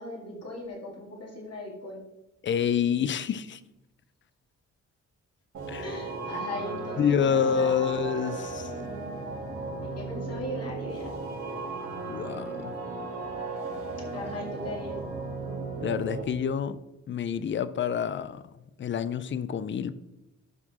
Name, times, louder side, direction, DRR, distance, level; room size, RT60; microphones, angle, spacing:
voice 1, 0.0-2.0 5.8-7.9 9.8-11.2 14.1-15.0, left 1 dB, 55° left, -2 dB, 2.3 m, -38 dB
voice 2, 2.4-3.6 5.7-6.0 7.0-8.7 12.0-12.7 15.8-16.8 17.1-18.4 18.8-19.9, left 7 dB, 40° left, 15 dB, 0.5 m, -27 dB
sound 1, 5.5-16.2, right 3 dB, 85° right, 3.1 m, -36 dB
12.0 x 4.5 x 4.2 m, 0.96 s
cardioid pair, 110°, 29 cm